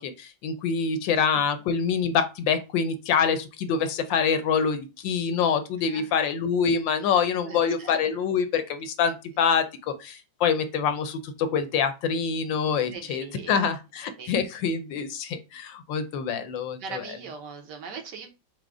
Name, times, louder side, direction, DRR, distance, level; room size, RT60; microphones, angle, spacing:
voice 1, 0.0-17.0, left 6 dB, 75° left, 10 dB, 1.2 m, -26 dB
voice 2, 5.9-6.3 7.4-8.0 12.9-13.5 14.2-14.4 16.8-18.3, right 5 dB, 65° right, 4 dB, 1.4 m, -40 dB
4.9 x 2.1 x 4.6 m, 0.28 s
omnidirectional pair, 2.2 m